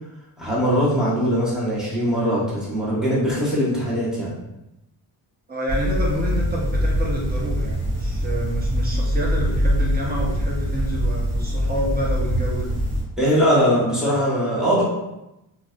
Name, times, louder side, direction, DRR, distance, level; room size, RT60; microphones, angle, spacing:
voice 1, 0.4-4.3 13.2-14.8, equal, ahead, -8 dB, 1.2 m, -21 dB
voice 2, 5.5-12.7, equal, 20° right, -4 dB, 0.7 m, -28 dB
sound 1, 5.7-13.0, equal, 45° right, 1.3 m, -23 dB
2.5 x 2.1 x 2.4 m, 0.92 s
cardioid pair, 80°, 46 cm